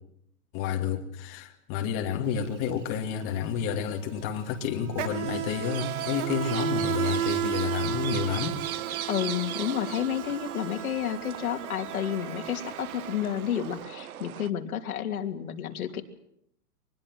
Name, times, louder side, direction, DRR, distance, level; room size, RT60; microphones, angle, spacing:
voice 1, 0.5-8.6, left 7 dB, 25° left, 3 dB, 2.5 m, -30 dB
Insect, 2.3-2.5 2.7-13.7, right 9 dB, 50° right, 2.6 m, -34 dB
sound 1, 5.6-14.5, right 11 dB, 65° right, 1.2 m, -39 dB
voice 2, 9.1-16.0, left 9 dB, 70° left, 6 dB, 3.0 m, -31 dB
24.0 x 21.0 x 7.8 m, 0.72 s
hypercardioid pair, 160°, 45 cm